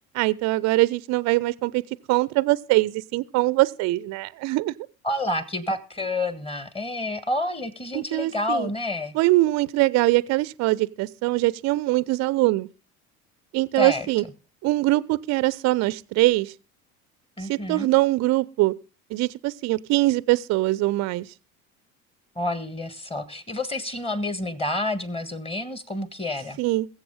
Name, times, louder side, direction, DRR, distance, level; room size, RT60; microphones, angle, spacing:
voice 1, 0.1-1.8 2.1-4.7 7.9-8.7 9.1-12.7 13.5-14.2 14.6-16.5 17.5-18.7 19.1-21.3 26.6-26.9, right 19 dB, 40° right, 0.6 m, -22 dB
voice 2, 5.0-9.2 13.8-14.1 17.4-17.9 22.3-26.6, left 1 dB, 15° left, 1.5 m, -29 dB
21.5 x 7.7 x 3.7 m
figure-of-eight pair, 65°, 43 cm